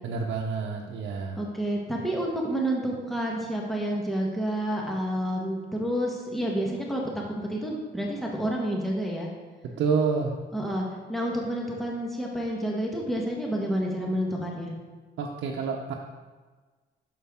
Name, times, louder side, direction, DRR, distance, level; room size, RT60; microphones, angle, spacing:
voice 1, 0.0-1.4 9.8-10.3 15.2-15.9, right 5 dB, 85° right, -1 dB, 0.8 m, -28 dB
voice 2, 1.4-7.0 7.3-9.3 10.5-14.7, right 1 dB, ahead, -2 dB, 1.2 m, -29 dB
8.5 x 6.4 x 3.6 m, 1.4 s
cardioid pair, 115°, 19 cm